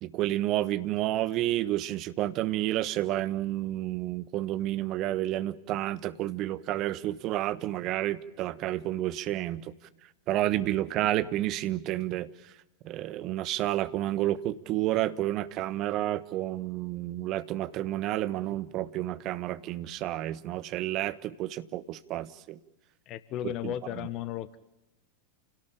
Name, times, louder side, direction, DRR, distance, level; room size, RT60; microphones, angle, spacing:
voice 1, 0.0-9.7 10.3-12.5 12.8-22.6 23.6-23.7, right 14 dB, 40° right, 15 dB, 1.2 m, -30 dB
voice 2, 23.1-24.6, left 12 dB, 35° left, 15 dB, 0.9 m, -35 dB
29.5 x 18.0 x 8.6 m, 0.93 s
figure-of-eight pair, 90°, 0 cm